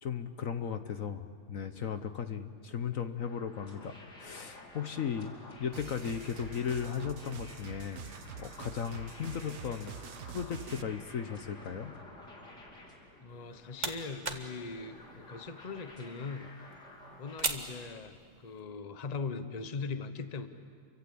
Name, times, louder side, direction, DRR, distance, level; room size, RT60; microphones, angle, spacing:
voice 1, 0.0-8.0 8.4-10.0 10.3-11.9, left 7 dB, 60° left, 9 dB, 1.3 m, -36 dB
sound 1, 3.3-17.4, left 2 dB, 85° left, 3.8 m, -52 dB
sound 2, 5.7-10.8, right 8 dB, 65° right, 1.4 m, -46 dB
voice 2, 13.2-16.5 17.2-20.5, left 4 dB, 30° left, 9 dB, 1.1 m, -40 dB
sound 3, 13.3-18.6, right 2 dB, 25° right, 1.7 m, -41 dB
29.0 x 24.0 x 8.6 m, 2.3 s
omnidirectional pair, 1.7 m